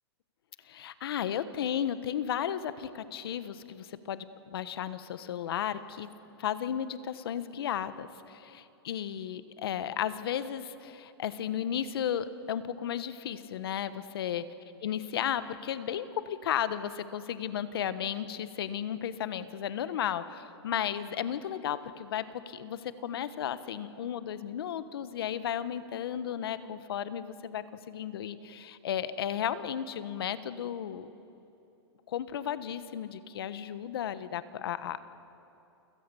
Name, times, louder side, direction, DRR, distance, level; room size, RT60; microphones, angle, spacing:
voice 1, 0.7-6.1 6.4-14.4 14.8-31.1 32.1-35.0, left 9 dB, 60° left, 13 dB, 1.3 m, -34 dB
28.5 x 17.5 x 7.1 m, 2.8 s
hypercardioid pair, 165°, 14 cm